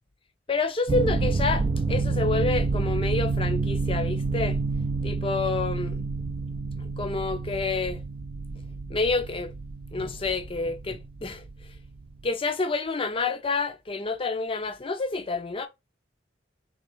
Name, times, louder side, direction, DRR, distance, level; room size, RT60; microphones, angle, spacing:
voice 1, 0.5-4.6 5.0-6.0 6.8-8.0 8.9-9.5 9.9-11.4 12.2-15.7, left 3 dB, 30° left, 0.5 m, -28 dB
sound 1, 0.9-12.2, right 3 dB, 30° right, 0.3 m, -29 dB
4.2 x 3.0 x 3.0 m
head